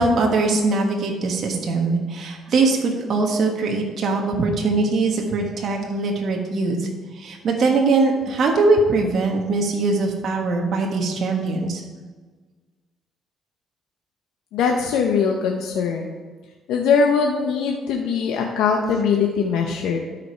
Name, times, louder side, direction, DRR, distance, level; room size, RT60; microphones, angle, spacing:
voice 1, 0.0-6.9 7.1-11.8, right 3 dB, 50° right, 1 dB, 1.4 m, -21 dB
voice 2, 14.5-16.2 16.7-20.0, left 5 dB, 90° left, 1 dB, 0.8 m, -21 dB
12.5 x 5.2 x 4.5 m, 1.4 s
cardioid pair, 125°, 0 cm